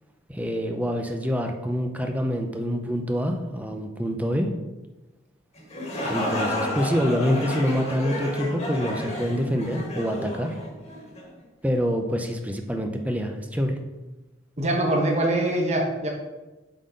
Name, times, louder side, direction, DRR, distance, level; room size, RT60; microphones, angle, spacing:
voice 1, 0.3-4.5 6.0-10.6 11.6-13.8, equal, 10° right, 4 dB, 0.6 m, -26 dB
sound 1, 5.6-11.3, left 1 dB, 35° left, 1.7 m, -31 dB
voice 2, 14.6-16.1, right 1 dB, 35° right, -1 dB, 1.2 m, -23 dB
7.6 x 4.2 x 5.1 m, 1.1 s
head